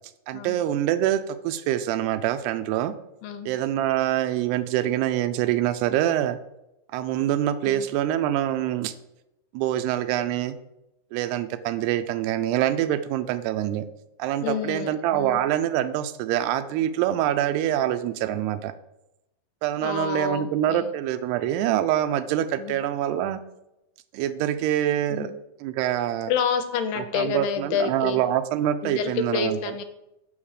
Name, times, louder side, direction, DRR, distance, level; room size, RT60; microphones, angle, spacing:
voice 1, 0.3-2.9 3.5-6.4 6.9-8.9 9.5-10.6 11.1-13.9 14.2-18.7 19.6-23.4 24.1-25.3 25.6-26.3 27.0-29.6, right 12 dB, 90° right, 10 dB, 2.7 m, -25 dB
voice 2, 3.2-3.5 7.7-7.9 14.4-15.4 19.8-20.9 22.6-22.8 25.1-25.3 26.3-28.2 28.8-29.8, left 6 dB, 80° left, 8 dB, 2.6 m, -28 dB
7.3 x 6.2 x 4.8 m, 0.89 s
omnidirectional pair, 4.6 m